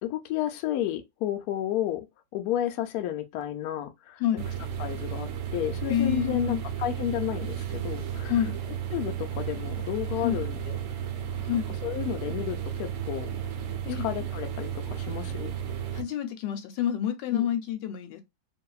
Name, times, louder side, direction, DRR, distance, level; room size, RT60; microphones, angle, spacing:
voice 1, 0.0-2.1 2.3-4.2 4.8-8.3 8.9-10.8 11.8-13.3 14.0-15.5 17.3-17.4, left 11 dB, 70° left, 1.0 m, -31 dB
sound 1, 4.4-16.0, right 9 dB, 70° right, 0.8 m, -33 dB
voice 2, 5.9-6.6 8.3-8.6 10.2-10.4 11.4-11.7 13.8-14.1 15.9-18.2, left 10 dB, 90° left, 1.3 m, -28 dB
2.7 x 2.5 x 2.3 m
omnidirectional pair, 1.9 m